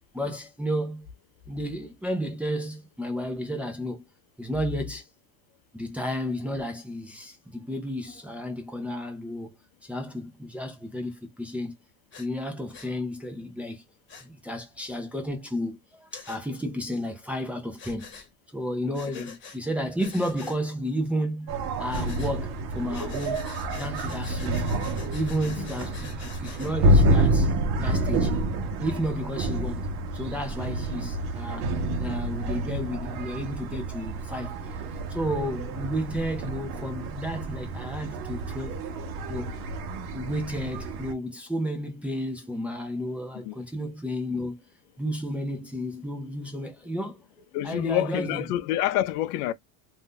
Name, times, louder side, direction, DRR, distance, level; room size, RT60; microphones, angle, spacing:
voice 1, 0.1-1.1 1.5-4.0 4.4-5.0 5.7-9.6 9.8-11.8 12.2-13.8 14.2-18.1 18.5-24.7 25.1-27.5 27.8-28.4 28.8-29.9 30.1-34.5 35.1-38.8 39.3-39.6 40.1-44.6 45.0-47.2 47.6-48.5, equal, 5° right, 0.4 m, -32 dB
Breathing, 12.1-12.3 12.7-12.9 14.1-14.3 16.1-16.4 17.8-18.3 18.9-19.6 20.0-20.6 21.9-22.3 22.9-26.7, left 5 dB, 25° left, 1.0 m, -45 dB
sound 1, 21.5-41.1, right 1 dB, 55° right, 0.9 m, -28 dB
voice 2, 47.5-49.5, left 13 dB, 85° left, 0.6 m, -27 dB
2.6 x 2.3 x 3.5 m
supercardioid pair, 130°, 44 cm